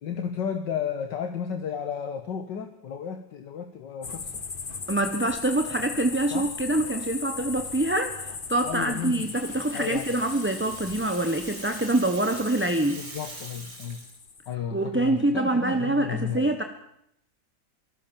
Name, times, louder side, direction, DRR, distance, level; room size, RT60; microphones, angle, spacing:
voice 1, 0.0-4.4 6.3-6.5 8.6-9.3 9.7-10.1 12.9-14.1 14.5-16.6, left 7 dB, 65° left, 7 dB, 2.0 m, -33 dB
sound 1, 4.0-14.5, left 5 dB, 30° left, 1.2 m, -38 dB
voice 2, 4.9-13.0 14.7-16.6, right 1 dB, 10° right, 6 dB, 1.0 m, -25 dB
Rattle (instrument), 8.9-14.2, right 2 dB, 60° right, 4.5 m, -44 dB
27.5 x 18.5 x 7.3 m, 0.77 s
omnidirectional pair, 2.1 m